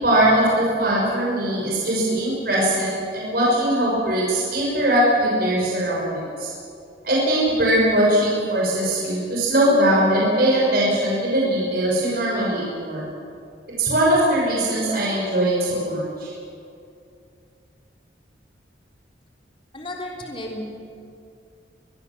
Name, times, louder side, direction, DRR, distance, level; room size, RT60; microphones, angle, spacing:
voice 1, 0.0-6.5 7.0-13.1 13.8-16.3, right 1 dB, 55° right, -4 dB, 5.8 m, -20 dB
voice 2, 19.7-20.6, left 1 dB, 30° left, 0 dB, 3.5 m, -33 dB
24.0 x 21.0 x 7.4 m, 2.5 s
head